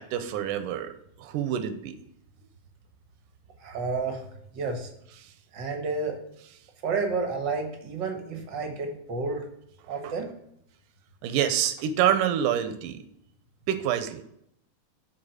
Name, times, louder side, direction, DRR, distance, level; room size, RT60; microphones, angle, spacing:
voice 1, 0.0-2.0 10.0-10.1 11.2-13.0 13.7-14.2, right 10 dB, 80° right, 10 dB, 2.3 m, -27 dB
voice 2, 3.6-4.2 4.5-4.9 5.5-6.2 6.8-9.4 9.9-10.3, right 4 dB, 55° right, 4 dB, 1.2 m, -30 dB
7.4 x 4.6 x 6.3 m, 0.73 s
omnidirectional pair, 3.8 m